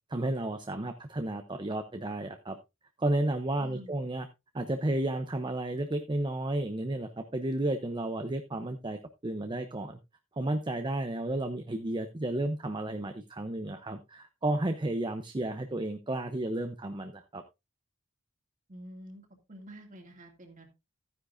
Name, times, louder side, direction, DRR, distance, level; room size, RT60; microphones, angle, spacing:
voice 1, 0.1-2.6 3.0-4.3 4.5-10.0 10.4-17.4, right 1 dB, 20° right, 8 dB, 0.6 m, -32 dB
voice 2, 3.6-4.0 18.7-20.7, right 1 dB, 40° right, 3 dB, 2.3 m, -48 dB
13.0 x 9.7 x 2.5 m, 0.24 s
head